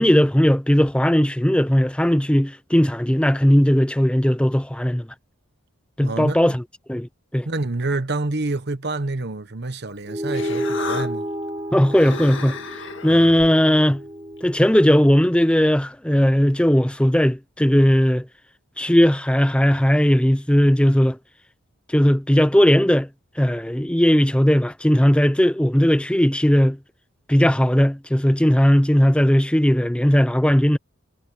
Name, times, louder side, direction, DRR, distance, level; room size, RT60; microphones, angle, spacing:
voice 1, 0.0-5.1 6.0-6.6 6.9-7.5 11.7-12.6 13.0-14.0 14.4-18.2 18.8-21.2 21.9-23.1 23.4-26.8 27.3-30.8, equal, 5° left, 0.6 m, -17 dB
voice 2, 6.0-6.6 7.4-11.3 13.1-13.3, right 2 dB, 50° right, 1.2 m, -28 dB
Human voice, 9.9-15.1, left 4 dB, 55° left, 2.0 m, -36 dB
sound 1, 10.1-14.9, equal, 20° right, 1.6 m, -31 dB
head